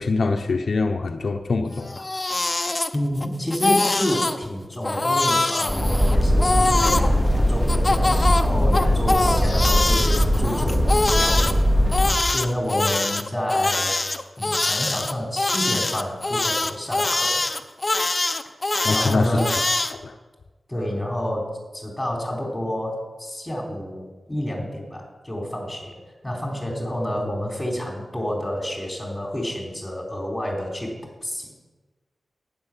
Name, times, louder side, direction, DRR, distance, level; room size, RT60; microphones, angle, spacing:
voice 1, 0.0-2.0 18.8-19.4 19.9-20.2, left 3 dB, 65° left, 4 dB, 0.8 m, -24 dB
Crying sobbing, 1.8-3.3 3.5-4.4 4.8-7.1 7.7-11.5 11.9-19.9, left 2 dB, 25° left, 0.8 m, -23 dB
voice 2, 2.9-14.0 14.4-17.4 18.9-19.6 20.7-26.0 26.2-31.5, equal, 10° left, 0 dB, 3.9 m, -29 dB
sound 1, 5.7-12.1, equal, 25° right, 3.5 m, -20 dB
12.0 x 9.9 x 7.4 m, 1.3 s
wide cardioid pair, 110°, 0 cm